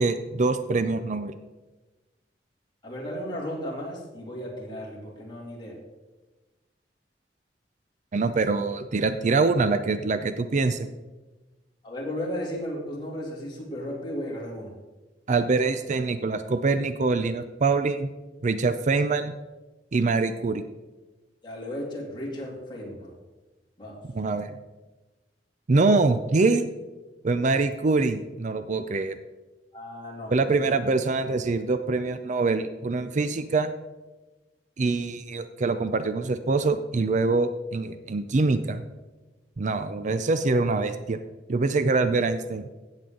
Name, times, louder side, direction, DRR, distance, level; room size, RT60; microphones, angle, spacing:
voice 1, 0.0-1.3 8.1-10.9 15.3-18.1 18.4-19.3 19.9-20.6 24.1-24.6 25.7-26.7 27.2-29.2 30.3-33.7 34.8-38.8 39.6-41.2 41.5-42.6, right 3 dB, 45° right, 10 dB, 0.5 m, -24 dB
voice 2, 2.8-5.8 11.8-14.7 21.4-23.1 23.8-24.0 29.7-30.8, left 1 dB, 25° left, -3 dB, 2.8 m, -35 dB
16.0 x 7.4 x 3.8 m, 1.2 s
head